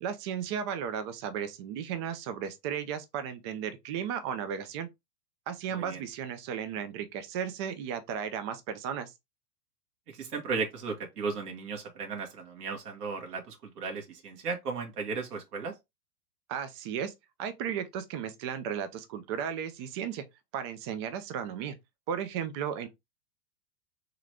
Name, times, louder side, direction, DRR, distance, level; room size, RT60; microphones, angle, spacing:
voice 1, 0.0-4.9 5.5-9.1 16.5-17.1 17.4-20.3 20.5-21.8 22.1-22.9, right 8 dB, 20° right, 0.3 m, -35 dB
voice 2, 10.1-15.7, right 4 dB, 70° right, 1.7 m, -35 dB
3.8 x 3.2 x 3.3 m
hypercardioid pair, 105°, 48 cm